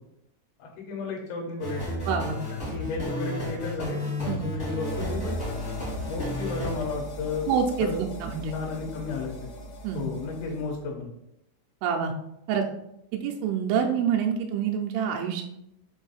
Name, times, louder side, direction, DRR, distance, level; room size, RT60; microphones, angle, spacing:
voice 1, 0.6-2.0 2.5-5.6 6.1-7.5 7.8-8.0 8.5-9.4 10.0-11.1, left 4 dB, 90° left, -1 dB, 3.7 m, -33 dB
sound 1, 1.6-6.8, left 1 dB, 55° left, 0.8 m, -32 dB
voice 2, 2.1-2.4 4.3-4.4 7.5-8.6 9.8-10.1 11.8-12.1 12.5-12.6 13.1-15.4, right 7 dB, 85° right, 1 dB, 3.1 m, -27 dB
sound 2, 4.8-10.9, equal, 70° left, 2.0 m, -39 dB
7.7 x 2.6 x 5.6 m, 0.82 s
omnidirectional pair, 5.6 m